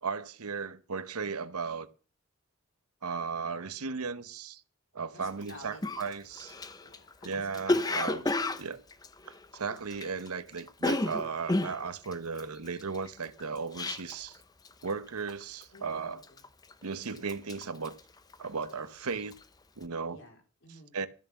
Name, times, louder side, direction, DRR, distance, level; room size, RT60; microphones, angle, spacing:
voice 1, 0.0-1.9 3.0-4.6 4.9-6.5 7.2-8.2 8.6-8.8 9.2-14.4 14.8-16.2 16.8-18.0 18.4-19.4 19.8-20.2 20.9-21.1, right 5 dB, 85° right, 1.0 m, -36 dB
voice 2, 5.1-6.1 6.8-8.6 15.7-16.5 20.1-21.1, left 1 dB, 55° left, 3.7 m, -52 dB
Cough, 5.4-5.5 5.8-10.3 10.5-14.4 14.6-15.0 15.3-15.8 16.2-16.8 17.1-18.8 19.1-19.4, left 2 dB, 15° left, 0.6 m, -32 dB
13.5 x 7.3 x 7.0 m
head